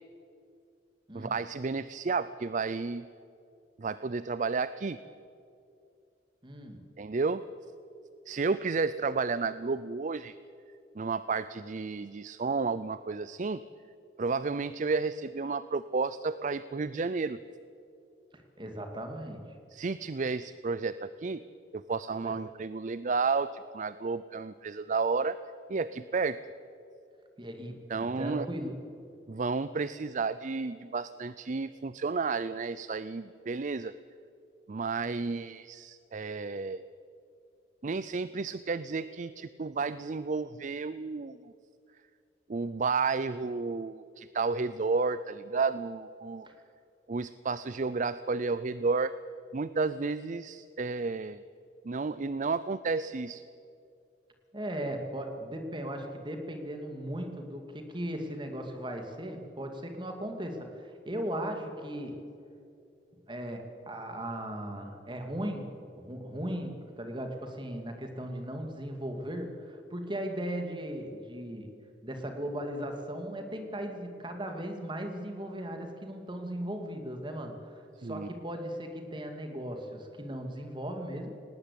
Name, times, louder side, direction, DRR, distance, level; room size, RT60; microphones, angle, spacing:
voice 1, 1.1-3.1 3.8-5.0 7.0-7.4 8.3-10.3 11.0-13.6 14.2-17.4 19.7-21.4 21.7-23.5 23.7-25.4 25.7-26.4 27.9-28.5 29.3-33.9 34.7-36.8 37.8-41.4 42.5-46.5 47.1-49.1 49.5-51.4 51.8-53.4 78.0-78.3, right 4 dB, 45° right, 15 dB, 0.5 m, -32 dB
voice 2, 6.4-6.8 18.6-19.5 22.2-22.3 27.4-28.8 46.4-46.5 54.5-62.2 63.3-71.7 72.0-81.3, right 1 dB, 25° right, 4 dB, 2.4 m, -37 dB
19.5 x 17.5 x 8.7 m, 2.5 s
head